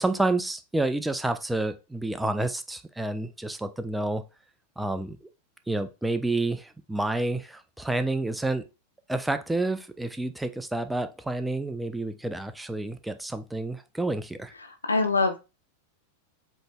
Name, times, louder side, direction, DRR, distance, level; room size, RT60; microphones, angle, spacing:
voice 1, 0.0-4.2 4.8-5.2 5.7-8.7 9.1-14.5, right 2 dB, 5° right, 0.4 m, -29 dB
voice 2, 14.6-15.4, left 3 dB, 75° left, 0.8 m, -24 dB
7.6 x 3.0 x 2.3 m
figure-of-eight pair, 90°, 0 cm